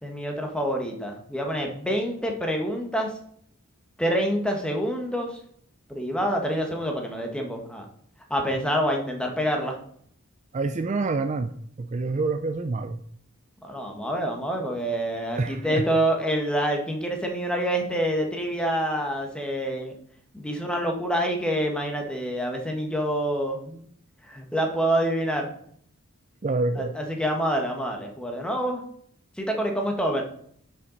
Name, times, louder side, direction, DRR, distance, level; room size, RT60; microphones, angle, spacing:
voice 1, 0.0-3.1 4.0-5.4 5.9-7.9 8.3-9.8 13.6-19.9 20.3-23.8 24.3-25.5 26.8-28.8 29.4-30.2, equal, 5° left, 2 dB, 1.3 m, -27 dB
voice 2, 10.5-11.5 11.8-13.0 15.4-15.8 26.4-26.9, right 3 dB, 30° right, 9 dB, 0.4 m, -27 dB
9.6 x 5.8 x 4.0 m, 0.64 s
head